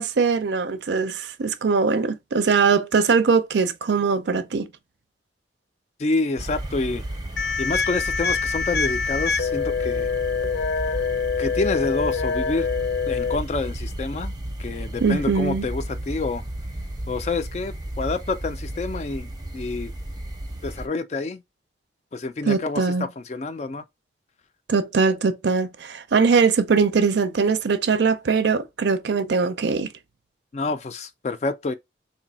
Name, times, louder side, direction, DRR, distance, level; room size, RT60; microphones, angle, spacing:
voice 1, 0.0-4.7 15.0-15.6 22.5-23.1 24.7-29.9, right 5 dB, 70° right, 0.5 m, -21 dB
voice 2, 6.0-7.0 7.6-10.1 11.4-12.7 13.1-14.3 14.6-16.4 17.1-19.9 20.6-21.4 22.1-23.8 30.5-31.7, left 3 dB, 35° left, 0.3 m, -28 dB
sound 1, 6.4-20.9, right 1 dB, 20° right, 0.6 m, -33 dB
sound 2, 7.4-13.4, left 5 dB, 70° left, 0.7 m, -25 dB
3.3 x 2.6 x 4.0 m
head